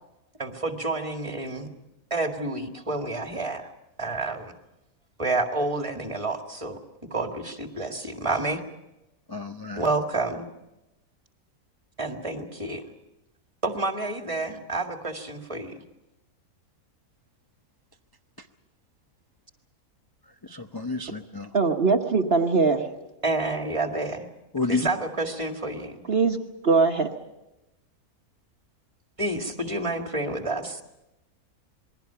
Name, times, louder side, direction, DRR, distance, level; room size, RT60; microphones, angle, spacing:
voice 1, 0.4-1.7 2.1-3.7 4.0-4.5 5.2-6.8 7.1-8.6 9.8-10.5 12.0-12.8 13.6-15.8 23.2-24.3 24.6-26.1 29.2-30.8, right 2 dB, 20° right, 4 dB, 1.9 m, -29 dB
voice 2, 9.3-9.8 20.5-21.5 24.5-24.9, left 3 dB, 25° left, 3 dB, 0.5 m, -30 dB
voice 3, 21.5-22.9 26.1-26.4 26.6-27.1, right 4 dB, 45° right, 4 dB, 1.3 m, -21 dB
28.0 x 21.0 x 5.7 m, 0.95 s
omnidirectional pair, 1.6 m